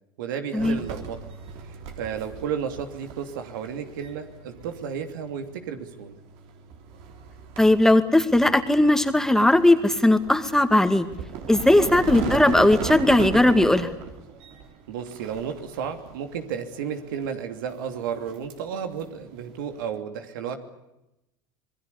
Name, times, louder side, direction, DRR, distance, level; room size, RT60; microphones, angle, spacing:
voice 1, 0.2-1.2 2.0-6.2 11.8-12.0 14.9-20.6, right 7 dB, 80° right, 7 dB, 2.9 m, -32 dB
sound 1, 0.6-20.0, right 6 dB, 65° right, 3.5 m, -38 dB
voice 2, 7.6-11.1 11.5-13.9, left 1 dB, 5° left, 8 dB, 2.2 m, -18 dB
26.5 x 20.0 x 8.4 m, 0.92 s
hypercardioid pair, 90°, 11 cm